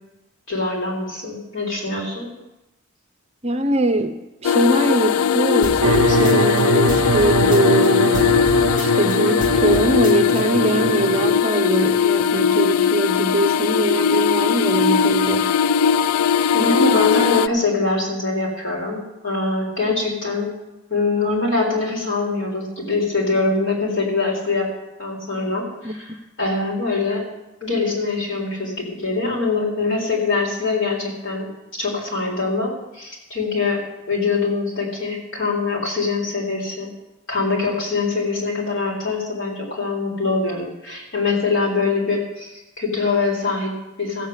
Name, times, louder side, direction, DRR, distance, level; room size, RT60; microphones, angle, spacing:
voice 1, 0.5-2.3 6.1-6.2 16.5-20.5 20.9-24.7 25.0-27.3 27.6-33.8 34.1-36.9 37.3-44.3, left 3 dB, 60° left, -2 dB, 4.1 m, -23 dB
voice 2, 3.4-8.3 8.8-15.5 25.8-25.9, right 1 dB, 30° right, 8 dB, 0.7 m, -22 dB
sound 1, 4.4-17.5, left 7 dB, 85° left, 0.3 m, -19 dB
sound 2, 5.6-7.9 8.1-10.4, right 1 dB, 35° left, 1.3 m, -31 dB
sound 3, 5.8-11.4, right 4 dB, 80° right, 0.5 m, -23 dB
15.0 x 7.4 x 8.1 m, 0.96 s
head